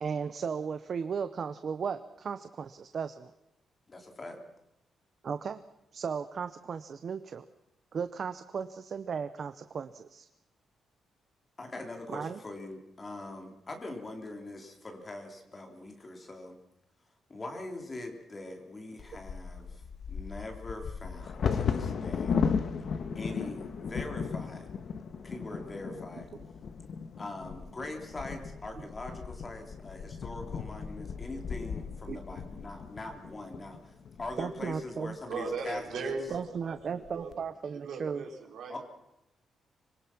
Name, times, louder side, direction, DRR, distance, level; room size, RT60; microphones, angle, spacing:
voice 1, 0.0-3.3 5.2-5.6 5.9-7.4 7.9-10.3 12.1-12.4 32.1-32.2 34.4-35.2 36.3-38.2, right 6 dB, 40° right, 11 dB, 0.8 m, -35 dB
voice 2, 3.9-4.4 11.6-16.6 17.3-19.8 20.1-22.4 23.2-24.7 25.2-26.3 27.2-36.1 38.7-38.8, left 2 dB, 20° left, 3 dB, 3.6 m, -42 dB
Bird vocalization bird call bird song / Wind / Thunder, 19.0-34.9 35.5-35.6 36.0-36.4 36.8-37.3, left 6 dB, 50° left, 1.6 m, -36 dB
voice 3, 35.3-37.4 37.7-38.8, right 4 dB, 75° right, 2 dB, 4.5 m, -38 dB
25.5 x 22.0 x 6.1 m, 0.87 s
wide cardioid pair, 175°, 0 cm